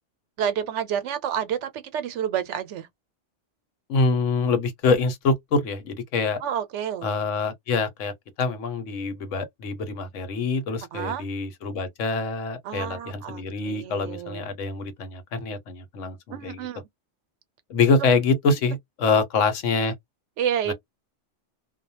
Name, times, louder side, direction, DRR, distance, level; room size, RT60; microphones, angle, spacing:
voice 1, 0.4-2.9 6.4-7.1 10.9-11.2 12.6-14.4 16.3-16.8 20.4-20.7, right 9 dB, 80° right, 0.9 m, -29 dB
voice 2, 3.9-6.4 7.0-16.7 17.7-19.9 20.7-20.8, left 4 dB, 85° left, 1.1 m, -25 dB
2.3 x 2.1 x 2.7 m
omnidirectional pair, 1.2 m